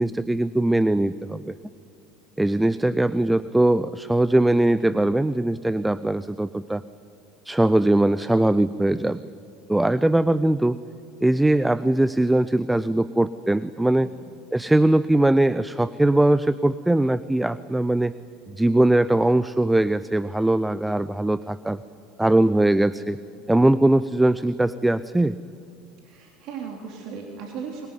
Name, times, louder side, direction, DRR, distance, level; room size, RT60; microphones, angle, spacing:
voice 1, 0.0-1.5 2.4-6.8 7.4-9.2 9.7-10.8 11.2-14.1 14.5-18.1 18.5-21.8 22.2-23.2 23.5-25.4, right 1 dB, 5° right, 16 dB, 0.6 m, -21 dB
voice 2, 26.0-27.9, right 6 dB, 50° right, 1 dB, 3.4 m, -37 dB
23.5 x 22.0 x 9.6 m, 2.5 s
figure-of-eight pair, 70°, 0 cm